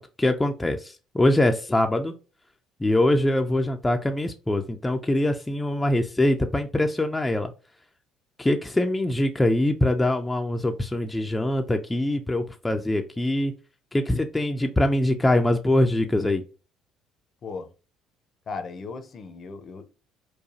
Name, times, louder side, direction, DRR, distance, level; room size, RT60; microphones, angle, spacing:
voice 1, 0.0-2.1 2.8-7.5 8.4-13.6 13.9-16.4, left 1 dB, 15° left, 0.5 m, -23 dB
voice 2, 18.5-19.9, left 4 dB, 45° left, 0.8 m, -36 dB
4.8 x 2.3 x 2.8 m
supercardioid pair, 70°, 0 cm